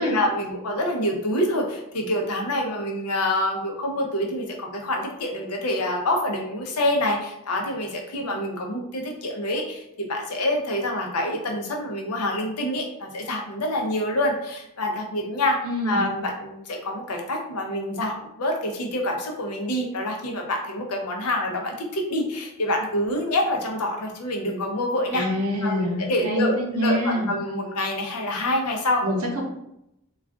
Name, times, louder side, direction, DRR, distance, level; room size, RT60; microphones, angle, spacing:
voice 1, 0.0-15.6 15.8-25.3 25.6-26.5 26.8-29.0, left 1 dB, 85° left, 1 dB, 0.6 m, -26 dB
voice 2, 15.6-16.1 25.1-27.3 29.0-29.4, equal, 70° right, 1 dB, 0.7 m, -25 dB
2.4 x 2.3 x 3.4 m, 0.82 s
head